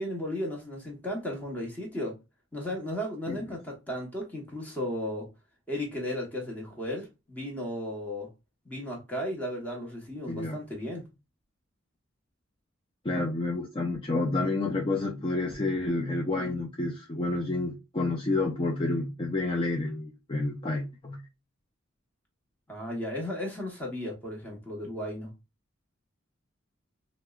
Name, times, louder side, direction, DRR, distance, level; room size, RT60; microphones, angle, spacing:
voice 1, 0.0-2.2 2.5-5.3 5.7-8.3 8.6-11.1 22.7-25.3, left 1 dB, 10° left, 0.9 m, -35 dB
voice 2, 10.3-10.6 13.0-21.2, left 2 dB, 25° left, 0.4 m, -29 dB
4.4 x 2.0 x 2.3 m
head